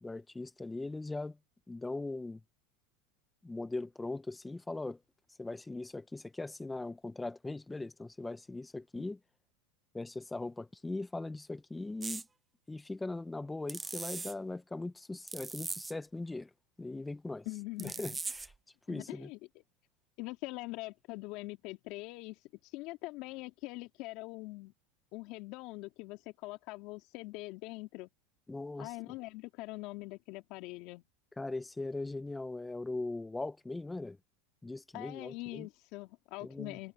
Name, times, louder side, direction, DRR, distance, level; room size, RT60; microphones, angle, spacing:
voice 1, 0.0-1.4 1.7-2.4 3.4-5.0 5.4-9.2 9.9-12.2 12.7-16.5 16.8-17.5 17.8-18.5 18.9-19.3 28.5-28.9 31.4-34.2 34.6-35.7 36.4-36.8, left 2 dB, 10° left, 1.4 m, -40 dB
sound 1, 12.0-12.2 13.7-14.3 15.3-15.9 17.8-18.5, right 4 dB, 15° right, 0.9 m, -40 dB
voice 2, 17.4-18.2 18.9-19.4 20.2-24.7 25.1-28.1 28.8-31.0 34.9-36.9, left 21 dB, 60° left, 2.8 m, -43 dB
supercardioid pair, 110°, 0 cm